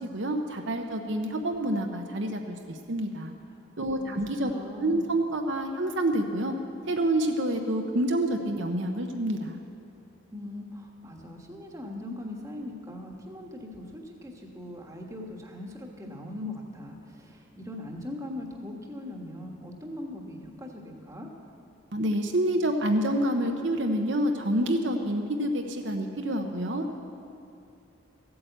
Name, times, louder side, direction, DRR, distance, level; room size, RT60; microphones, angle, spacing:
voice 1, 0.0-3.3 3.8-4.5 4.8-6.5 6.9-9.6 21.9-26.9, right 1 dB, 60° right, 3 dB, 0.9 m, -28 dB
voice 2, 4.5-5.1 10.3-21.3, left 1 dB, 15° right, 1 dB, 1.4 m, -40 dB
15.0 x 8.7 x 8.0 m, 2.6 s
head